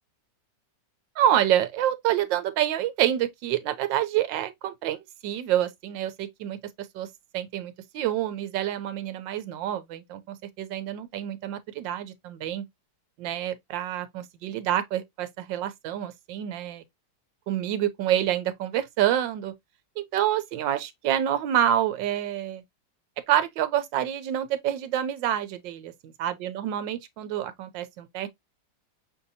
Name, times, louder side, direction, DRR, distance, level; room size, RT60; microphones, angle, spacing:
voice 1, 1.2-6.6 6.9-7.1 7.3-12.6 13.2-16.8 17.5-19.5 20.0-22.6 23.3-28.3, right 11 dB, 85° right, 1.3 m, -27 dB
6.2 x 2.7 x 2.6 m
omnidirectional pair, 2.0 m